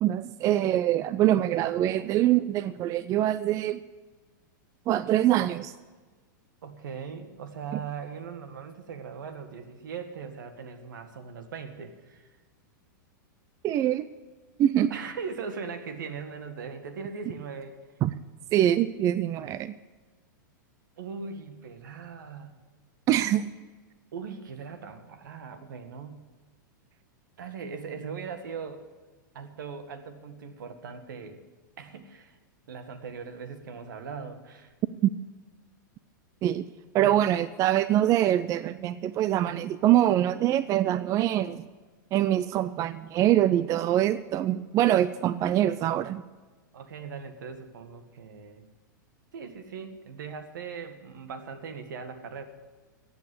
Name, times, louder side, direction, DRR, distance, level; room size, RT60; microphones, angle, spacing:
voice 1, 0.0-3.8 4.9-5.7 13.6-14.1 14.6-14.9 18.0-18.1 18.5-19.7 23.1-23.5 35.0-35.1 36.4-36.6 36.9-41.7 42.1-46.2, right 12 dB, 30° right, 15 dB, 0.4 m, -24 dB
voice 2, 6.6-12.4 14.9-17.8 21.0-22.5 24.1-26.2 27.4-28.8 29.3-31.4 31.8-32.4 32.7-34.7 37.0-37.1 46.7-48.7 49.3-52.4, right 5 dB, 75° right, 8 dB, 1.8 m, -40 dB
15.0 x 8.7 x 8.0 m, 1.3 s
hypercardioid pair, 125°, 11 cm